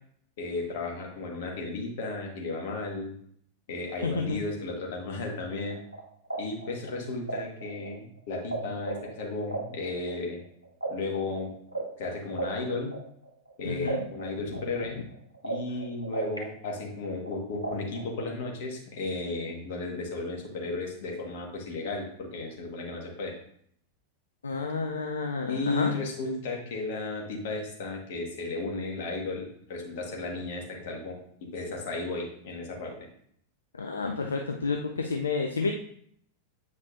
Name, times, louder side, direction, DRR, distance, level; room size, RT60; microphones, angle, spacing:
voice 1, 0.4-3.1 3.7-5.8 6.4-10.4 10.9-11.5 12.0-12.9 13.6-15.0 15.4-23.3 25.5-33.0, left 3 dB, 55° left, 0 dB, 1.5 m, -34 dB
voice 2, 4.0-4.4 13.6-14.1 24.4-25.9 33.8-35.7, left 4 dB, 75° left, 3 dB, 0.5 m, -30 dB
sound 1, 5.6-8.6 8.8-13.5 13.9-16.4 16.7-18.3, right 3 dB, 85° right, 1.0 m, -35 dB
8.0 x 5.3 x 2.6 m, 0.65 s
figure-of-eight pair, 90°, 0 cm